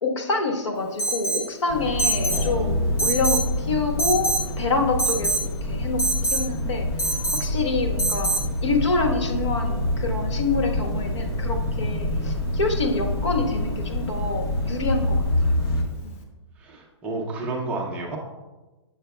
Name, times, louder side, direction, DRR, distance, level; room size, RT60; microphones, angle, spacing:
voice 1, 0.0-15.5 16.0-16.2, left 3 dB, 80° left, 3 dB, 1.3 m, -27 dB
Alarm, 1.0-1.5 2.0-2.4 3.0-3.5 4.0-4.5 5.0-5.5 6.0-6.4 7.0-7.4 8.0-8.4, right 2 dB, 30° left, 0.9 m, -24 dB
sound 1, 1.7-15.8, left 1 dB, 55° left, 1.2 m, -26 dB
voice 2, 2.3-3.1 16.6-18.2, right 2 dB, 10° right, -1 dB, 0.5 m, -31 dB
7.8 x 6.7 x 2.2 m, 1.1 s
hypercardioid pair, 165°, 15 cm